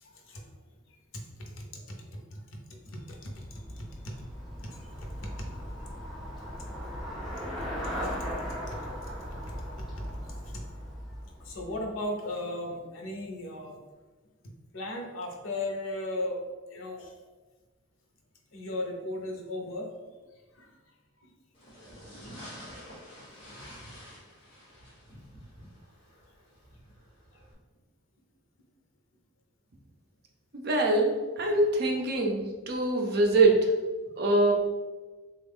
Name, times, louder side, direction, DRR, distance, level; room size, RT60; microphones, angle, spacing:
voice 1, 0.0-0.4 1.1-2.6 2.8-4.1 4.6-4.9 5.2-5.5 7.2-7.5 8.0-8.1 10.1-10.2 11.4-13.8 14.7-16.4 16.7-17.1 18.5-19.9 20.5-20.7, left 1 dB, 85° left, 1 dB, 0.7 m, -37 dB
Traffic noise roadway noise / Bicycle, 2.8-12.0, equal, ahead, 0.5 m, -38 dB
sound 1, 21.5-27.5, equal, 25° left, 1.5 m, -48 dB
voice 2, 30.5-33.7 34.2-34.5, right 2 dB, 50° right, 1 dB, 0.5 m, -24 dB
3.5 x 2.3 x 3.5 m, 1.3 s
head